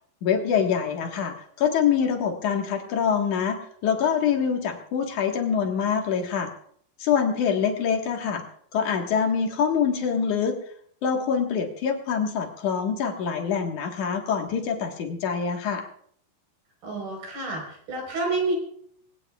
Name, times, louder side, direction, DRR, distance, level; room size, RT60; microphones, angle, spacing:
voice 1, 0.2-6.5 7.0-8.4 8.7-10.6 11.0-15.9, left 7 dB, 60° left, 3 dB, 2.6 m, -25 dB
voice 2, 16.8-18.5, right 3 dB, 65° right, 0 dB, 6.1 m, -29 dB
25.0 x 17.0 x 2.4 m, 0.63 s
omnidirectional pair, 4.7 m